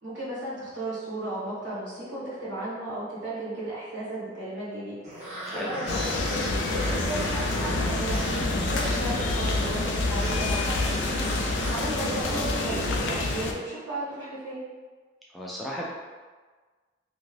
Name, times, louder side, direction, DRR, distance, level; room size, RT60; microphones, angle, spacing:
voice 1, 0.0-5.0 5.2-8.3 8.6-10.9 11.4-14.6, right 1 dB, 85° right, -8 dB, 1.2 m, -35 dB
sound 1, 5.0-13.5, equal, 35° right, 0.7 m, -34 dB
sound 2, 5.9-13.5, left 2 dB, 80° left, 0.4 m, -28 dB
voice 2, 15.3-15.9, equal, ahead, -5 dB, 0.3 m, -35 dB
2.7 x 2.5 x 3.1 m, 1.4 s
head